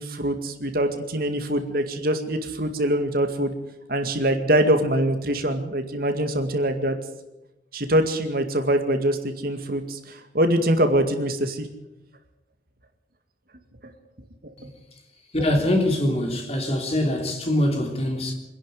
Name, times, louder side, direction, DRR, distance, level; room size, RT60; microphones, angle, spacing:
voice 1, 0.0-3.5 3.9-7.0 7.7-11.7, right 1 dB, 50° right, 2.1 m, -23 dB
voice 2, 15.3-18.3, left 1 dB, 35° left, 3.3 m, -23 dB
25.0 x 11.5 x 9.5 m
head